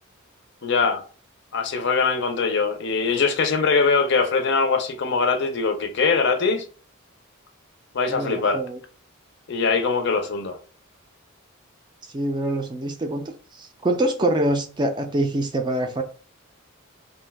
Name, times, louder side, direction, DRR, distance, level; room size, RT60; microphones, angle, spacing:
voice 1, 0.6-1.0 1.5-6.6 7.9-8.6 9.5-10.6, left 4 dB, 55° left, 0.5 m, -22 dB
voice 2, 8.1-8.8 12.1-16.0, right 1 dB, 20° right, 0.3 m, -25 dB
2.6 x 2.2 x 3.3 m
head